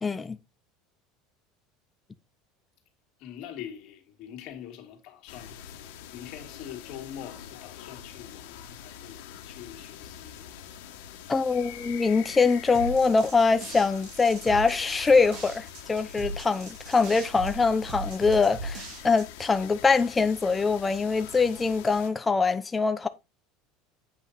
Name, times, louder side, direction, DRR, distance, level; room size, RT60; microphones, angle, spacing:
voice 1, 0.0-0.4 11.3-23.1, left 4 dB, 15° left, 0.7 m, -23 dB
voice 2, 3.2-5.7 6.1-10.7, left 10 dB, 50° left, 2.5 m, -44 dB
sound 1, 5.3-22.1, left 9 dB, 80° left, 1.6 m, -45 dB
sound 2, 12.7-19.5, right 2 dB, 50° right, 3.3 m, -38 dB
8.6 x 5.7 x 4.1 m
cardioid pair, 155°, 0 cm